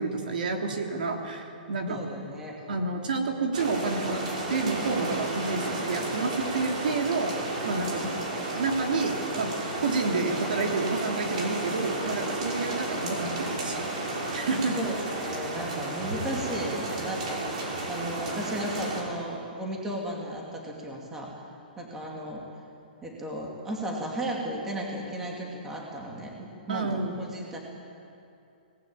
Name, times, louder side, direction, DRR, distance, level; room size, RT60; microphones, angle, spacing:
voice 1, 0.0-2.0 2.7-4.2 4.5-7.4 7.6-8.0 8.6-9.5 9.8-14.8 26.7-27.2, right 3 dB, 60° right, 2 dB, 3.3 m, -29 dB
voice 2, 1.9-2.6 8.0-8.4 14.7-21.3 21.8-22.4 23.0-27.6, right 1 dB, 5° right, -2 dB, 2.5 m, -35 dB
sound 1, 3.5-19.0, right 2 dB, 40° right, 5.1 m, -32 dB
25.5 x 19.0 x 8.8 m, 2.6 s
hypercardioid pair, 175°, 5 cm